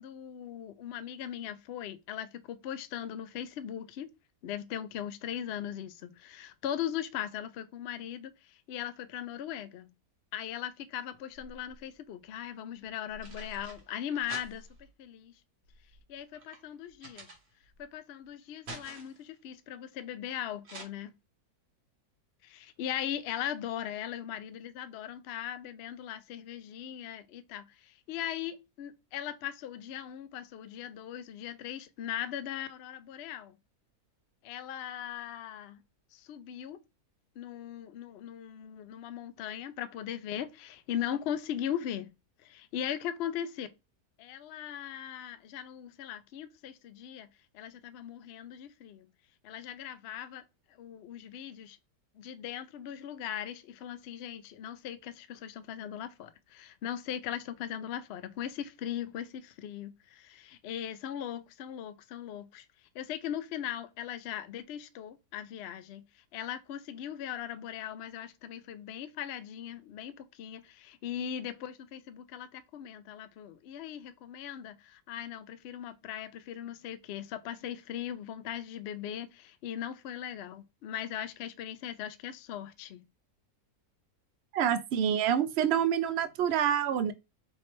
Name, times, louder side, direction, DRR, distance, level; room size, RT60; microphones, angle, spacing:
voice 1, 0.0-4.1 4.4-9.9 10.3-15.3 16.1-17.4 17.8-21.1 22.4-33.5 34.4-35.8 36.1-36.8 37.4-42.1 42.4-43.7 44.2-47.3 47.5-49.1 49.4-50.4 50.8-51.8 52.2-62.7 62.9-83.0, left 10 dB, 85° left, 0.5 m, -39 dB
sound 1, 11.1-11.9 12.8-14.9 15.6-17.9 18.2-19.3 20.6-20.8, right 2 dB, 45° right, 1.3 m, -48 dB
voice 2, 84.5-87.1, right 9 dB, 80° right, 0.5 m, -27 dB
3.4 x 3.2 x 4.3 m
omnidirectional pair, 1.6 m